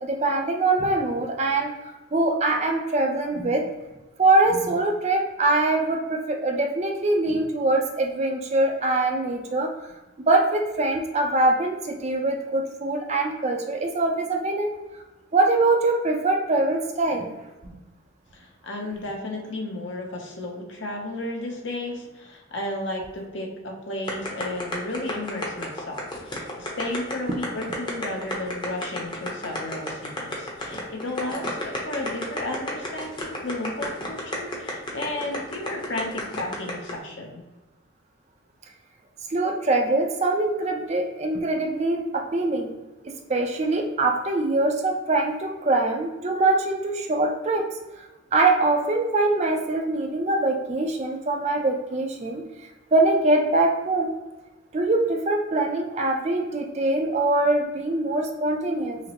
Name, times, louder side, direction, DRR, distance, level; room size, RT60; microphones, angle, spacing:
voice 1, 0.0-3.6 4.2-9.7 10.3-14.7 15.3-17.3 17.7-17.8 39.3-42.7 43.0-47.7 48.0-48.1 48.3-52.4 52.9-54.1 54.7-59.0, right 2 dB, 30° right, 3 dB, 0.4 m, -23 dB
voice 2, 18.3-37.4, left 1 dB, 60° left, 0 dB, 0.8 m, -33 dB
sound 1, 24.1-36.9, left 1 dB, 20° left, 0.7 m, -31 dB
5.7 x 2.0 x 2.9 m, 1.1 s
head